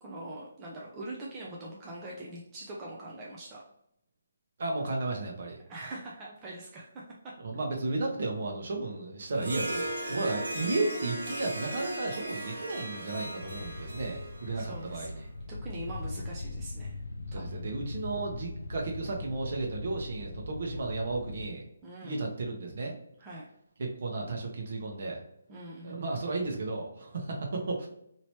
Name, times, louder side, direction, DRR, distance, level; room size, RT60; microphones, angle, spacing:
voice 1, 0.0-3.6 5.7-7.3 14.5-17.0 17.3-17.5 21.8-22.2 23.2-23.5 25.5-26.0, right 1 dB, 20° right, -4 dB, 0.5 m, -43 dB
voice 2, 4.6-5.6 7.4-15.2 17.3-21.6 22.0-22.9 23.8-25.2 25.8-27.9, right 3 dB, 55° right, 0 dB, 0.9 m, -34 dB
Harp, 9.3-15.1, right 1 dB, 85° right, 1.4 m, -37 dB
sound 1, 13.4-21.4, left 2 dB, 90° left, 0.5 m, -40 dB
3.0 x 2.8 x 3.1 m, 0.76 s
hypercardioid pair, 160°, 0 cm